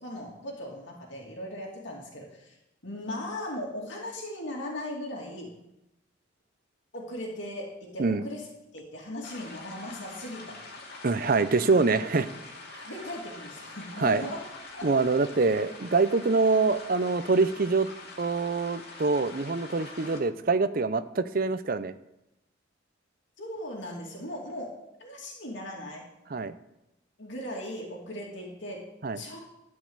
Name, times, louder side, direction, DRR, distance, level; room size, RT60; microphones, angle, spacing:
voice 1, 0.0-2.6 2.8-5.5 6.9-8.4 8.7-10.7 12.9-14.4 14.8-14.9 23.4-24.7 25.0-26.1 27.2-28.9 29.1-29.4, left 1 dB, 65° left, -2 dB, 2.5 m, -38 dB
sound 1, 9.2-20.2, left 3 dB, 50° left, 2.3 m, -45 dB
voice 2, 11.0-12.3 14.0-14.2 14.8-17.9 18.2-21.9 26.3-26.5 29.0-29.2, right 3 dB, 45° right, 13 dB, 0.6 m, -25 dB
12.5 x 5.3 x 8.0 m, 0.90 s
head